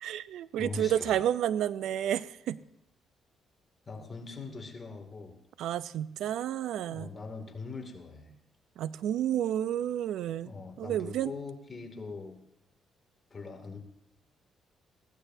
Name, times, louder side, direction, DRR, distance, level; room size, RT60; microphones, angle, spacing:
voice 1, 0.0-2.6 5.6-7.1 8.8-10.5 10.8-11.3, right 10 dB, 80° right, 16 dB, 0.6 m, -30 dB
voice 2, 0.6-1.2 3.9-5.4 6.9-8.4 10.4-12.4 13.3-13.8, left 4 dB, 30° left, 3 dB, 2.5 m, -42 dB
20.0 x 16.5 x 2.8 m, 0.85 s
cardioid pair, 90°, 0 cm